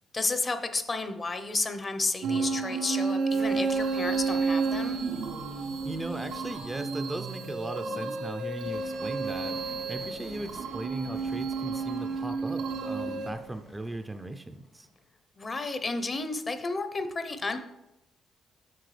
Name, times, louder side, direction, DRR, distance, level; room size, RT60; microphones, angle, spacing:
voice 1, 0.1-5.0 15.4-17.6, left 3 dB, 30° left, 9 dB, 0.7 m, -32 dB
sound 1, 2.2-13.3, right 4 dB, 85° right, 0.7 m, -31 dB
sound 2, 3.3-15.1, left 3 dB, 60° left, 1.7 m, -50 dB
voice 2, 5.8-14.9, right 1 dB, 15° right, 7 dB, 0.5 m, -38 dB
7.8 x 6.2 x 3.3 m, 0.91 s
cardioid pair, 90°, 0 cm